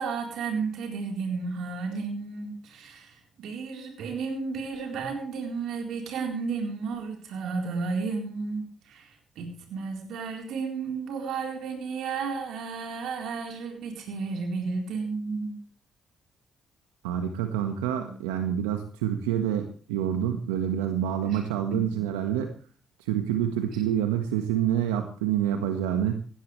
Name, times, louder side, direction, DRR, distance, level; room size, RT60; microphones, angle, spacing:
voice 1, 0.0-15.6 18.0-18.2 21.2-21.4 21.7-21.8, right 4 dB, 75° right, 3 dB, 4.2 m, -33 dB
voice 2, 17.0-22.5 23.0-26.1, right 10 dB, 90° right, 6 dB, 1.5 m, -27 dB
18.5 x 16.5 x 3.3 m, 0.39 s
hypercardioid pair, 45°, 0 cm